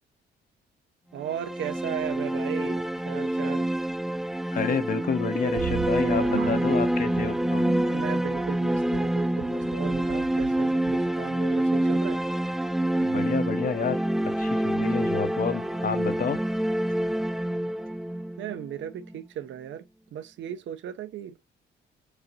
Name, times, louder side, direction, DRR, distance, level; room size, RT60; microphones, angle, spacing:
voice 1, 1.1-3.7 7.9-12.2 18.4-21.4, right 10 dB, 75° right, 0.9 m, -36 dB
sound 1, 1.2-19.2, right 1 dB, ahead, 0.5 m, -27 dB
voice 2, 4.5-7.7 13.0-16.4, left 6 dB, 45° left, 0.9 m, -29 dB
sound 2, 5.5-11.1, right 12 dB, 55° right, 0.4 m, -38 dB
6.5 x 2.6 x 2.9 m
cardioid pair, 90°, 20 cm